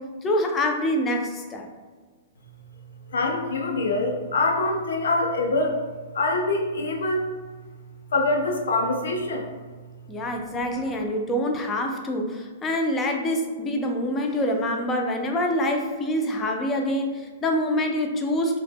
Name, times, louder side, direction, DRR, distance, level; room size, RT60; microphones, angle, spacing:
voice 1, 0.0-1.7 10.1-18.6, left 1 dB, 15° left, 3 dB, 0.3 m, -26 dB
voice 2, 3.1-5.8 6.1-7.3 8.1-9.5 10.4-10.5, left 2 dB, 85° left, 2 dB, 0.5 m, -24 dB
2.1 x 2.0 x 3.4 m, 1.4 s
hypercardioid pair, 155°, 0 cm